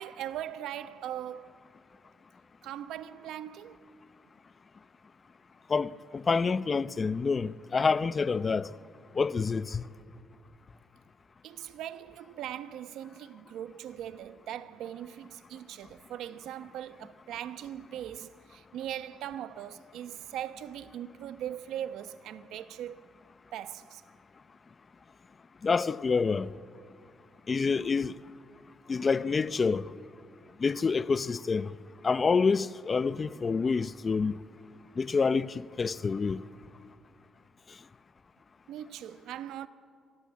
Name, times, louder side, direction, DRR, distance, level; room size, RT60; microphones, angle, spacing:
voice 1, 0.0-1.5 2.6-3.8 11.4-23.1 23.5-24.0 38.7-39.7, right 11 dB, 85° right, 1.0 m, -40 dB
voice 2, 5.7-8.7 9.1-9.8 25.6-26.5 27.5-28.1 28.9-29.9 30.6-31.7 32.0-34.4 35.0-36.4, left 5 dB, 35° left, 0.7 m, -27 dB
27.0 x 23.5 x 8.5 m
cardioid pair, 90°, 0 cm